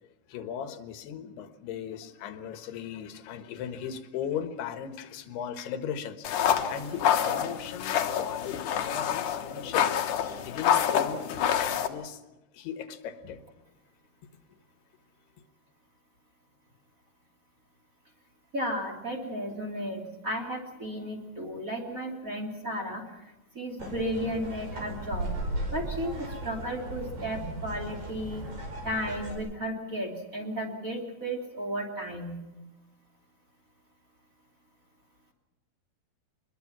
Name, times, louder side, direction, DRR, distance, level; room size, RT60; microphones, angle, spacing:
voice 1, 0.3-10.0 10.4-12.2 12.5-13.4, left 8 dB, 85° left, 9 dB, 3.3 m, -37 dB
sound 1, 6.2-11.9, left 9 dB, 65° left, 2.4 m, -27 dB
voice 2, 18.5-23.0 23.5-25.3 25.7-26.1 26.4-28.4 28.8-32.4, equal, 20° right, 0 dB, 2.9 m, -34 dB
sound 2, 23.8-29.4, right 1 dB, 60° right, 7.0 m, -36 dB
25.5 x 21.0 x 6.0 m, 1.1 s
omnidirectional pair, 4.5 m